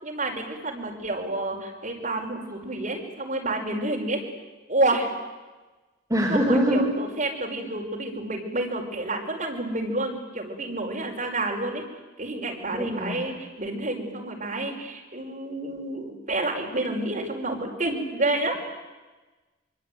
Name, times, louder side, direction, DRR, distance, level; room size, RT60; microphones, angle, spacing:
voice 1, 0.0-4.2 4.7-5.1 6.3-11.8 12.2-18.6, right 2 dB, 40° right, 1 dB, 5.4 m, -29 dB
voice 2, 6.1-7.0 12.7-13.3, equal, 15° right, -1 dB, 3.5 m, -23 dB
25.5 x 25.0 x 9.4 m, 1.2 s
head